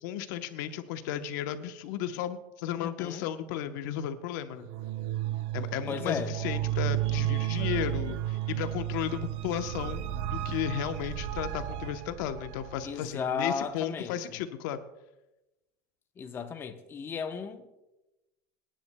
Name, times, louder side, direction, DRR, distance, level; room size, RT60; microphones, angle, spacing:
voice 1, 0.0-4.7 5.5-10.0 10.3-14.8, left 10 dB, 75° left, 0.9 m, -34 dB
voice 2, 2.8-3.2 5.9-6.3 12.8-14.4 16.2-17.7, left 6 dB, 20° left, 0.8 m, -35 dB
sound 1, 4.6-12.9, right 13 dB, 60° right, 0.7 m, -33 dB
26.0 x 10.5 x 2.2 m
cardioid pair, 155°, 10 cm